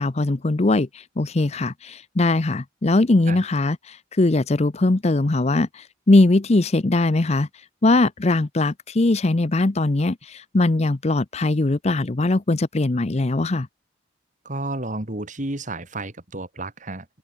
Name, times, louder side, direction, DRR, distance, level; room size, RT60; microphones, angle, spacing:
voice 1, 0.0-7.5 7.8-13.7, left 2 dB, 35° left, 0.7 m, -20 dB
voice 2, 14.4-17.1, right 2 dB, 40° right, 2.6 m, -31 dB
open air
head